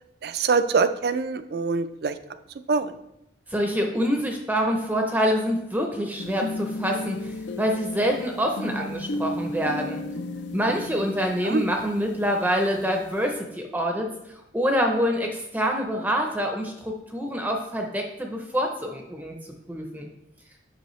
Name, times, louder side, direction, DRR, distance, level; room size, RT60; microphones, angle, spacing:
voice 1, 0.2-2.2 2.7-2.9 11.4-11.6, right 4 dB, 55° right, 12 dB, 0.4 m, -24 dB
voice 2, 3.5-10.0 10.5-19.4 19.7-20.1, equal, 10° right, 2 dB, 0.6 m, -26 dB
sound 1, 6.2-13.4, left 2 dB, 70° left, 0.5 m, -35 dB
8.0 x 5.5 x 3.1 m, 0.86 s
head